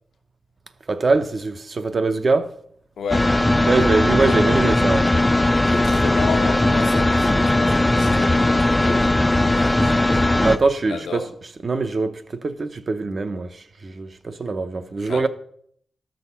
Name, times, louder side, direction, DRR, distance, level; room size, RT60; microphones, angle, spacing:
voice 1, 0.9-2.5 3.7-5.1 10.4-11.2 11.6-15.3, right 3 dB, 40° right, 0.7 m, -22 dB
voice 2, 3.0-3.4 5.7-11.3 15.0-15.3, left 5 dB, 80° left, 1.0 m, -32 dB
sound 1, 3.1-10.6, left 1 dB, 10° left, 0.4 m, -18 dB
13.0 x 6.4 x 5.5 m
wide cardioid pair, 155°, 0 cm